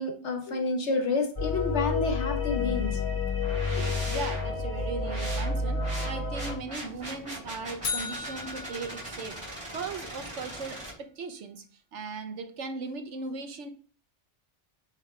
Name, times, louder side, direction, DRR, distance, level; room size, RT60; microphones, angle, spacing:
voice 1, 0.0-3.0 3.7-4.0, left 3 dB, 75° left, 4 dB, 1.5 m, -29 dB
sound 1, 1.4-6.5, left 4 dB, 15° left, 2.1 m, -29 dB
sound 2, 3.4-10.9, right 1 dB, 25° right, 4.0 m, -40 dB
voice 2, 4.1-9.4 9.7-11.6 11.9-13.7, right 4 dB, 90° right, 7 dB, 1.3 m, -38 dB
sound 3, 7.8-10.0, left 5 dB, 50° left, 0.9 m, -37 dB
9.1 x 4.0 x 3.3 m, 0.42 s
omnidirectional pair, 1.2 m